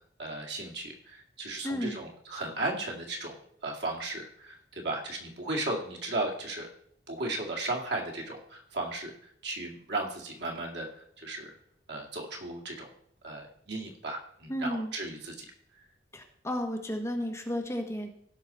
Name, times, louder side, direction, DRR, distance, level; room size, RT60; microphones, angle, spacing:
voice 1, 0.2-3.3 3.6-6.7 7.1-10.9 11.2-11.5 11.9-12.9 13.2-15.5, right 2 dB, 70° right, -1 dB, 2.3 m, -35 dB
voice 2, 1.6-2.0 14.5-14.9 16.1-18.1, equal, 15° left, 2 dB, 1.5 m, -33 dB
16.5 x 6.1 x 4.2 m, 0.65 s
head